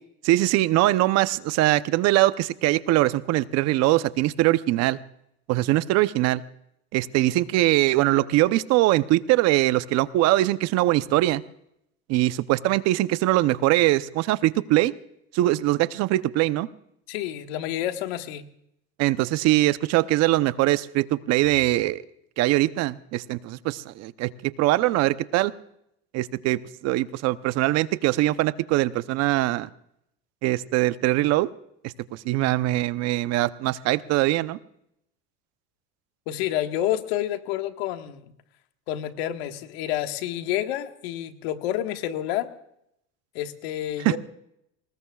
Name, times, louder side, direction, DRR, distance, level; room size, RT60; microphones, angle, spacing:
voice 1, 0.2-5.0 5.5-6.4 6.9-11.4 12.1-14.9 15.3-16.7 19.0-22.0 22.4-25.5 26.1-29.7 30.4-31.5 31.8-34.6 44.0-44.1, right 16 dB, 55° right, 14 dB, 0.8 m, -22 dB
voice 2, 17.1-18.5 36.3-38.2 38.9-42.5 43.3-44.2, left 12 dB, 80° left, 7 dB, 1.6 m, -29 dB
25.0 x 20.0 x 2.4 m, 0.76 s
supercardioid pair, 120°, 31 cm